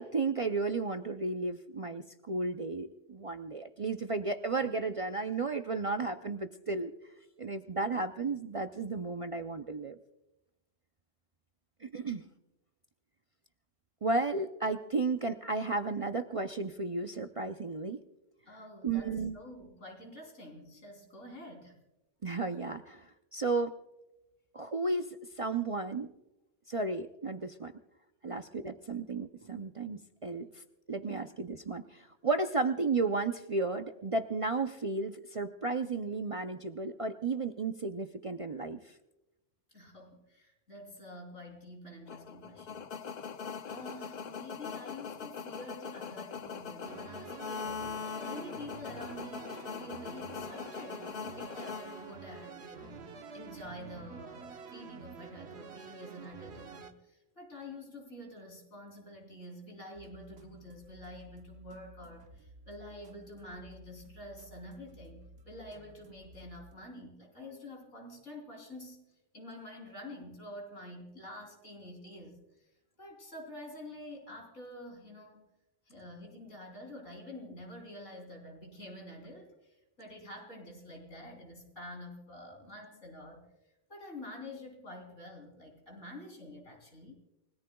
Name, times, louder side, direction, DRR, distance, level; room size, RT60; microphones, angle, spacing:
voice 1, 0.0-6.9 7.4-10.0 11.8-12.2 14.0-18.0 18.8-19.4 22.2-23.7 24.5-26.1 26.7-27.7 28.2-30.6 30.9-38.8, right 3 dB, 40° right, 7 dB, 0.5 m, -33 dB
voice 2, 18.5-21.8 28.2-28.4 39.7-42.9 43.7-47.9 48.2-69.0 69.3-72.7 73.0-75.5 75.9-83.4 83.9-87.1, left 1 dB, 90° left, 2 dB, 3.8 m, -48 dB
sound 1, 42.1-52.5, left 6 dB, 50° left, 0.6 m, -41 dB
sound 2, 46.8-56.9, right 6 dB, 65° right, 1.2 m, -48 dB
sound 3, 59.9-66.7, right 1 dB, 90° right, 1.7 m, -56 dB
29.5 x 18.0 x 2.3 m, 0.93 s
omnidirectional pair, 1.2 m